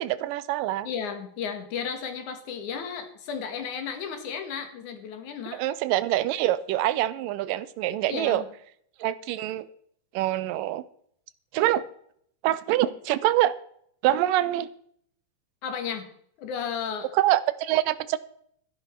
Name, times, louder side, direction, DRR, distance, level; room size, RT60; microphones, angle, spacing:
voice 1, 0.0-0.9 5.5-8.4 9.0-9.7 10.1-10.8 11.5-11.8 12.4-13.6 14.0-14.7 17.1-18.2, right 14 dB, 85° right, 16 dB, 2.3 m, -25 dB
voice 2, 0.8-5.6 8.1-8.5 15.6-16.1 16.4-17.1, left 6 dB, 65° left, 7 dB, 2.9 m, -33 dB
13.5 x 11.0 x 4.5 m, 0.66 s
omnidirectional pair, 3.8 m